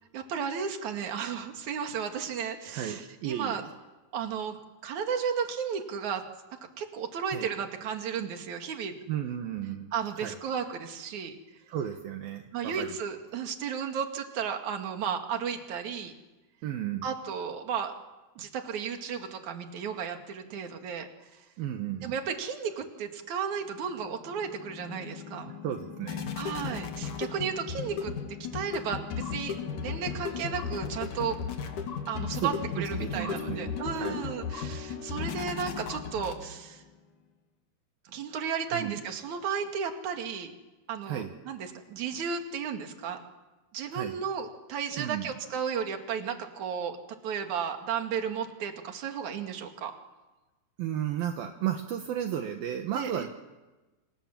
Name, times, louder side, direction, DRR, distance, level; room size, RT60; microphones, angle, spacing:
voice 1, 0.1-3.6 4.1-4.6 4.8-6.3 6.8-9.0 9.9-11.4 12.5-16.1 17.0-17.9 18.4-21.5 22.0-25.5 26.3-28.1 28.5-29.6 29.8-31.4 32.1-36.8 38.1-40.5 40.9-43.2 43.7-47.0 47.2-49.9 52.9-53.3, right 7 dB, 50° right, 5 dB, 3.4 m, -34 dB
voice 2, 2.7-3.7 7.3-7.5 9.1-10.4 11.7-13.0 16.6-17.1 21.6-22.2 25.6-26.8 32.3-34.3 38.7-39.0 41.0-41.3 43.9-44.2 45.0-45.3 50.8-53.3, right 10 dB, 70° right, 5 dB, 3.1 m, -34 dB
sound 1, 24.0-36.8, left 6 dB, 55° left, 3.3 m, -36 dB
28.5 x 27.0 x 7.5 m, 1.1 s
omnidirectional pair, 4.6 m